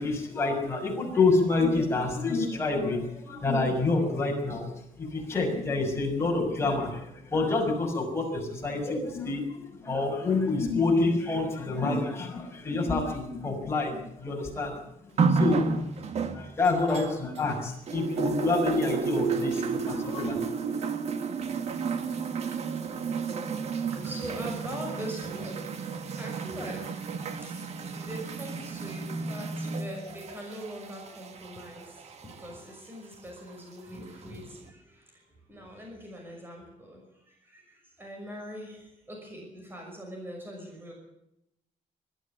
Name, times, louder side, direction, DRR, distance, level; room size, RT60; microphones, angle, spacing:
voice 1, 0.0-4.7 5.0-14.7 15.3-15.7 16.3-20.4, left 3 dB, 20° left, 0 dB, 6.3 m, -27 dB
sound 1, 15.2-17.5 17.9-32.6 33.5-33.6, right 5 dB, 50° right, 2.1 m, -31 dB
voice 2, 23.9-34.8 35.5-37.0 37.5-37.6 38.0-38.8 39.1-40.9, equal, 15° right, 1 dB, 5.9 m, -42 dB
21.5 x 13.5 x 8.7 m, 0.81 s
cardioid pair, 155°, 14 cm